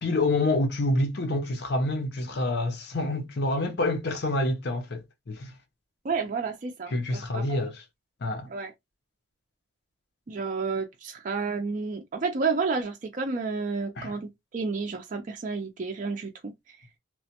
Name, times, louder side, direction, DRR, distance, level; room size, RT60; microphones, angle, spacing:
voice 1, 0.0-5.5 6.9-7.8 8.2-8.5 14.0-14.1, left 2 dB, 55° left, 0.6 m, -27 dB
voice 2, 6.0-7.5 8.5-8.7 10.3-16.8, right 4 dB, 40° right, 0.4 m, -31 dB
2.9 x 2.1 x 2.8 m
head